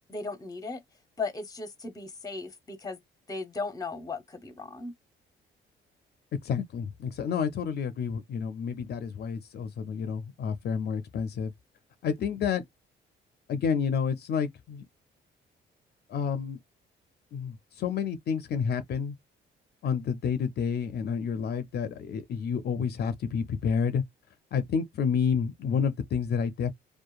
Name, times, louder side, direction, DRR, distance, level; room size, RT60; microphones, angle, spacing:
voice 1, 0.1-0.8 1.2-3.0 3.3-4.9, left 3 dB, 20° left, 0.7 m, -36 dB
voice 2, 6.4-11.5 12.0-12.6 13.5-14.8 16.1-16.6 17.3-19.1 19.8-24.0 24.5-26.7, left 6 dB, 55° left, 0.4 m, -29 dB
2.8 x 2.2 x 2.3 m
cardioid pair, 90°, 20 cm